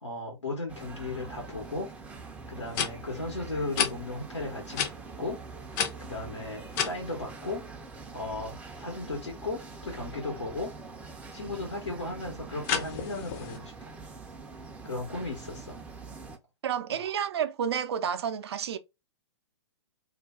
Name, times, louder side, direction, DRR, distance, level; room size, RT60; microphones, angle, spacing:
voice 1, 0.0-1.9 2.5-4.9 5.2-5.4 6.0-7.6 8.1-10.7 11.3-13.7 14.8-15.8 16.9-17.1, left 2 dB, 90° left, 1.1 m, -36 dB
sound 1, 0.7-16.4, right 4 dB, 10° right, 0.5 m, -44 dB
sound 2, 1.9-2.0 2.7-2.9 3.7-3.9 4.7-4.9 5.7-6.9 12.6-13.6, left 7 dB, 40° left, 0.6 m, -30 dB
voice 2, 16.6-18.8, right 8 dB, 65° right, 0.5 m, -30 dB
2.5 x 2.2 x 3.5 m
hypercardioid pair, 120°, 14 cm